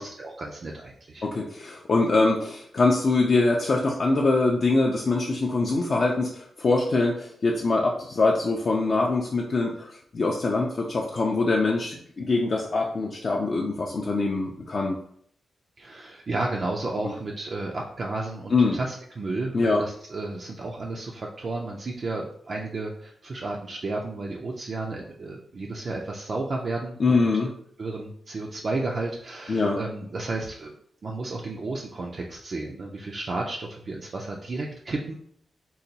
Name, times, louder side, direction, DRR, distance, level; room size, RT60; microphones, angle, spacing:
voice 1, 0.0-1.2 15.8-27.4 27.8-30.7 31.0-35.1, right 2 dB, 40° right, -1 dB, 0.3 m, -32 dB
voice 2, 1.2-15.0 18.5-18.8 19.5-19.8 27.0-27.5 29.5-29.8, left 3 dB, 40° left, -2 dB, 0.3 m, -23 dB
3.9 x 2.2 x 2.7 m, 0.64 s
wide cardioid pair, 165°, 0 cm